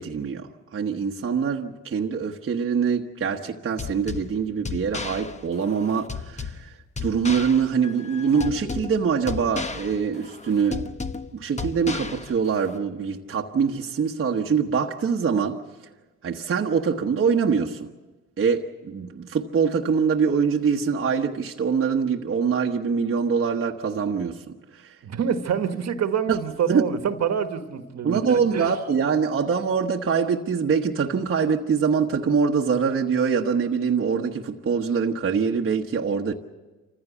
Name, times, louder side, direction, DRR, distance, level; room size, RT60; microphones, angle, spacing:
voice 1, 0.0-10.8 11.3-15.6 16.2-17.9 18.4-25.0 26.3-26.4 26.7-26.8 28.0-36.3, right 6 dB, 45° right, 1.2 m, -24 dB
sound 1, 3.8-12.8, left 4 dB, 25° left, 1.0 m, -34 dB
voice 2, 25.0-28.2 28.5-28.7, right 7 dB, 60° right, 1.5 m, -26 dB
27.0 x 15.0 x 8.3 m
cardioid pair, 90°, 30 cm